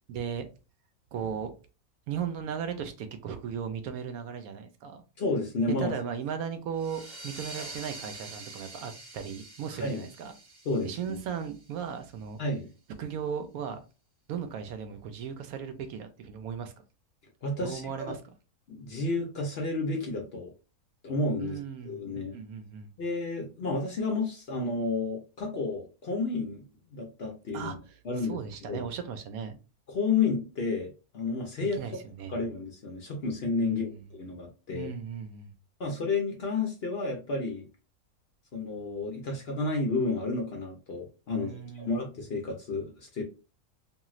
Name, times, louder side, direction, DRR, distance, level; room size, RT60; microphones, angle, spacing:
voice 1, 0.1-0.5 1.1-1.5 2.1-5.0 5.8-10.3 10.8-12.4 13.0-13.8 14.3-16.7 17.6-18.2 21.4-22.9 27.5-29.6 31.7-32.4 33.6-34.0 34.7-35.5 41.3-42.0, right 7 dB, 75° right, 8 dB, 1.0 m, -37 dB
voice 2, 5.2-5.9 9.8-10.0 10.7-11.2 12.4-12.7 17.4-17.9 18.7-20.5 21.0-21.6 21.9-22.3 23.0-26.6 26.9-27.7 28.0-28.8 29.9-31.8 32.3-34.9 35.8-37.7 38.5-43.2, left 3 dB, 55° left, 1 dB, 0.8 m, -31 dB
sound 1, 6.8-12.1, right 2 dB, 35° right, 0.9 m, -46 dB
3.0 x 2.7 x 2.4 m, 0.32 s
omnidirectional pair, 1.5 m